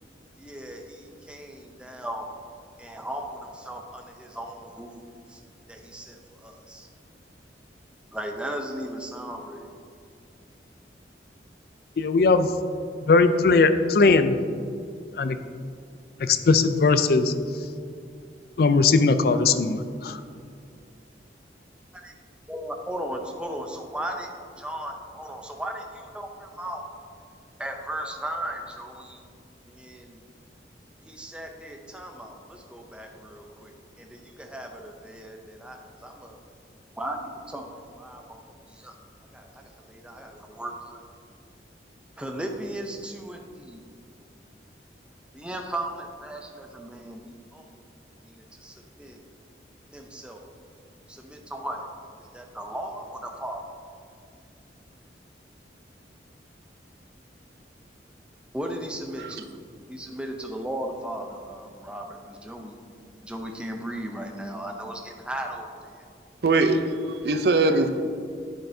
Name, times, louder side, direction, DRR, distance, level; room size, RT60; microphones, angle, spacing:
voice 1, 0.4-2.3 2.8-5.0 5.3-5.4 5.7-6.9 8.1-9.7 22.0-22.1 22.5-24.3 24.6-26.9 27.6-29.2 29.7-30.2 31.0-36.4 37.0-38.4 38.7-39.0 39.3-41.1 42.2-43.9 45.3-47.9 48.2-49.2 49.9-50.5 51.1-51.9 52.3-53.6 58.5-59.6 59.9-62.8 63.2-66.0, right 1 dB, 5° right, 2 dB, 0.6 m, -36 dB
voice 2, 12.0-12.5 13.0-14.4 15.2-15.4 16.2-17.3 18.6-20.2, left 4 dB, 60° left, 11 dB, 0.4 m, -19 dB
voice 3, 66.4-67.9, right 2 dB, 60° right, 8 dB, 0.5 m, -22 dB
9.3 x 7.4 x 2.7 m, 2.3 s
head